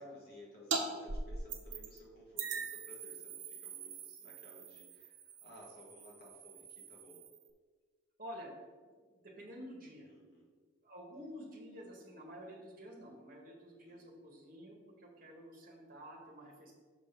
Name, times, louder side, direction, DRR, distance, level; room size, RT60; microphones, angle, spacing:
voice 1, 0.0-7.3 10.1-10.5 13.9-14.1, equal, 50° left, -4 dB, 1.9 m, -57 dB
sound 1, 0.7-2.0 2.4-7.5, right 4 dB, 70° right, 0.9 m, -42 dB
voice 2, 8.2-8.5 9.1-10.1 10.8-16.7, equal, 45° right, -1 dB, 1.5 m, -50 dB
6.4 x 4.1 x 5.2 m, 1.5 s
head